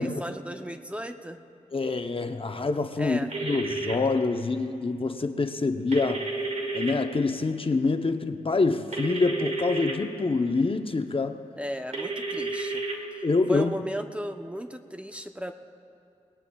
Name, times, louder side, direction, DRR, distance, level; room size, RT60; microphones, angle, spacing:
voice 1, 0.0-1.4 3.0-3.3 11.6-12.8 13.5-15.5, equal, 10° right, 6 dB, 0.7 m, -35 dB
voice 2, 1.7-6.3 6.7-11.4 13.2-13.7, left 3 dB, 45° left, 7 dB, 0.7 m, -26 dB
sound 1, 3.3-3.9 5.9-6.9 8.9-9.9 11.9-12.9, right 3 dB, 65° right, 2.3 m, -31 dB
23.0 x 19.0 x 2.3 m, 2.7 s
cardioid pair, 50°, 13 cm